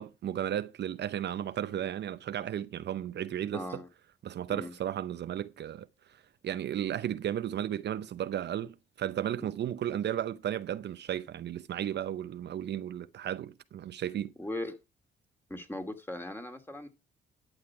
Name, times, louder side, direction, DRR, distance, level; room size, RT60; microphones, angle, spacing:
voice 1, 0.0-3.8 4.2-5.9 6.4-14.3, right 10 dB, 60° right, 0.7 m, -34 dB
voice 2, 3.5-3.9 4.5-4.7 14.4-14.8 15.5-16.9, left 1 dB, 10° left, 2.5 m, -38 dB
11.5 x 8.0 x 4.8 m
cardioid pair, 90°, 20 cm